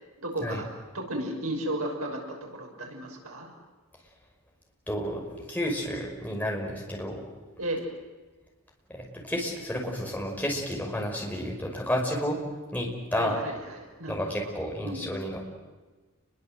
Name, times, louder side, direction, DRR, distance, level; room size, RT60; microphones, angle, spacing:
voice 1, 0.2-0.6 0.9-3.5 7.6-7.9 13.1-14.3 14.8-15.0, right 1 dB, 80° right, 1 dB, 6.7 m, -34 dB
voice 2, 4.9-7.2 8.9-12.4 12.7-13.4 14.1-15.4, equal, 5° left, -1 dB, 5.7 m, -31 dB
29.5 x 22.5 x 8.0 m, 1.3 s
head